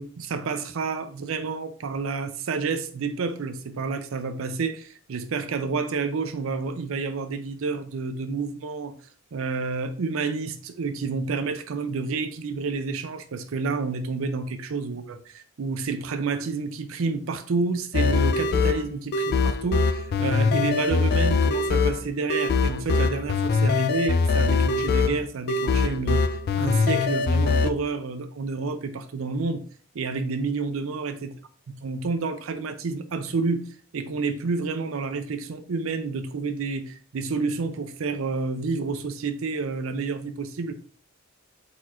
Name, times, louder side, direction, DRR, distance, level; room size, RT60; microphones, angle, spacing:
voice 1, 0.0-9.0 9.3-26.2 26.6-29.6 29.9-31.3 31.8-33.7 33.9-40.8, right 4 dB, 75° right, 0.5 m, -29 dB
sound 1, 17.9-27.7, left 4 dB, 50° left, 0.3 m, -23 dB
4.3 x 4.2 x 2.4 m
head